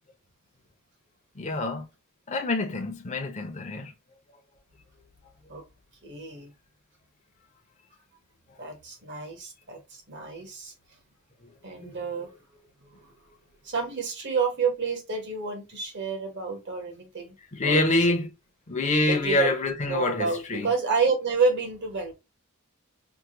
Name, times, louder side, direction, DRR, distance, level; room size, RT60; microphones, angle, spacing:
voice 1, 1.4-1.8 2.3-3.9 11.8-11.9 17.5-18.3 18.7-20.7, left 2 dB, 30° left, 0.6 m, -26 dB
voice 2, 6.0-6.5 8.6-10.7 11.6-12.3 12.9-13.1 13.6-17.4 17.6-18.0 19.0-19.5 19.9-22.1, right 4 dB, 50° right, 1.2 m, -29 dB
4.6 x 2.2 x 2.8 m
head